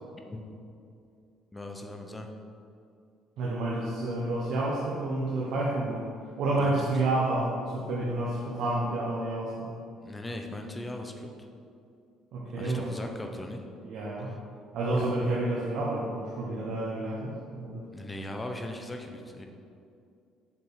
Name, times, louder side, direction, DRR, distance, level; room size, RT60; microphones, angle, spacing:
voice 1, 1.5-2.3 6.6-6.9 10.0-11.5 12.6-13.6 15.0-15.1 17.9-19.5, left 1 dB, 10° left, 4 dB, 0.6 m, -39 dB
voice 2, 3.4-6.0 6.4-9.7 12.3-12.9 13.8-14.3 14.7-17.9, right 2 dB, 60° right, -5 dB, 1.1 m, -29 dB
7.3 x 5.1 x 4.8 m, 2.5 s
cardioid pair, 160°, 0 cm